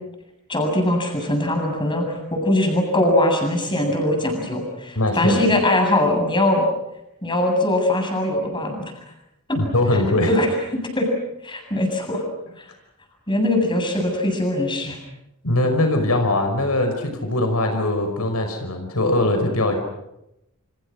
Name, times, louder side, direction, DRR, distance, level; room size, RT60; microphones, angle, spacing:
voice 1, 0.5-6.6 7.2-8.9 9.5-9.6 10.3-10.5 10.8-11.1 11.4-12.2 12.6-12.7 13.3-15.0, left 1 dB, 20° left, 3 dB, 7.9 m, -21 dB
voice 2, 5.0-5.4 9.5-10.3 15.4-19.7, left 1 dB, 80° left, 5 dB, 5.5 m, -21 dB
30.0 x 28.5 x 6.4 m, 0.85 s
head